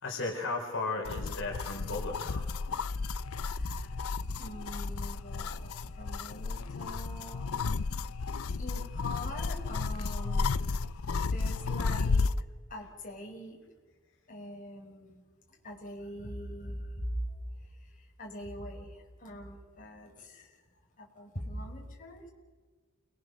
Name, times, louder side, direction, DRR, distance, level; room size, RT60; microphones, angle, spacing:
voice 1, 0.0-2.5, left 3 dB, 60° left, 1 dB, 4.6 m, -35 dB
sound 1, 1.0-12.4, left 4 dB, 80° left, 0.6 m, -33 dB
voice 2, 3.2-3.9 4.4-7.6 8.1-8.3 8.6-10.7 11.2-12.3 12.7-13.6 14.3-15.2 15.5-17.3 17.6-20.6 21.0-22.3, equal, 40° left, -1 dB, 5.4 m, -43 dB
29.5 x 21.5 x 6.5 m, 1.4 s
head